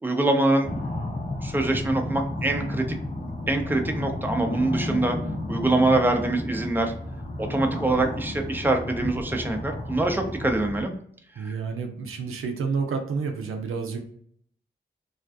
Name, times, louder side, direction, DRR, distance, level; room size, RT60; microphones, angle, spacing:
voice 1, 0.0-0.8 1.4-2.8 3.5-5.2 5.5-6.9 7.4-10.9 11.4-11.5, right 2 dB, 10° right, 4 dB, 0.6 m, -24 dB
sound 1, 0.6-10.8, left 1 dB, 40° left, 0.8 m, -32 dB
voice 2, 11.4-14.0, right 5 dB, 90° right, 4 dB, 0.5 m, -29 dB
2.4 x 2.2 x 2.4 m, 0.64 s
cardioid pair, 45°, 21 cm